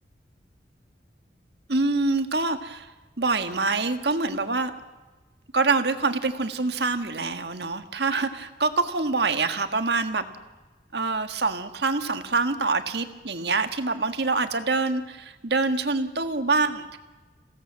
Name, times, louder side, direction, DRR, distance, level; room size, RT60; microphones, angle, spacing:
voice 1, 1.7-2.9 3.2-4.7 5.5-10.3 10.9-17.0, right 3 dB, 65° right, 8 dB, 1.6 m, -25 dB
27.5 x 17.0 x 7.6 m, 1.2 s
head